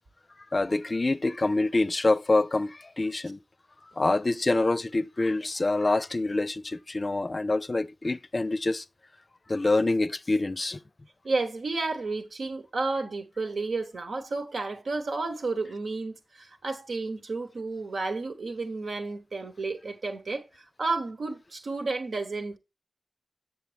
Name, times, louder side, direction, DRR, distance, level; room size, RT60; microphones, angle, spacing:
voice 1, 0.5-3.4 4.0-8.8 9.5-10.8, left 2 dB, 45° left, 0.5 m, -26 dB
voice 2, 11.2-22.6, right 3 dB, 80° right, 1.2 m, -32 dB
7.4 x 7.2 x 3.4 m
cardioid pair, 45°, 0 cm